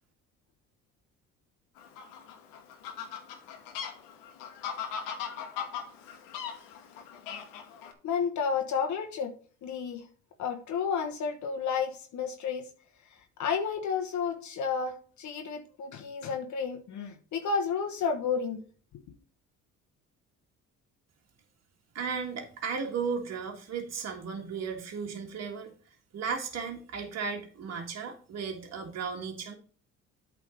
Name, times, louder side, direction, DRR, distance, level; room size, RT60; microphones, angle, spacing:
Fowl, 1.8-7.9, left 8 dB, 85° left, 1.3 m, -39 dB
voice 1, 8.0-9.3 9.6-10.1 10.4-12.7 13.0-18.6, left 6 dB, 60° left, 4 dB, 1.1 m, -31 dB
voice 2, 22.0-25.7 26.1-29.6, right 5 dB, 50° right, 1 dB, 1.7 m, -35 dB
8.4 x 3.8 x 5.1 m, 0.41 s
supercardioid pair, 65°, 33 cm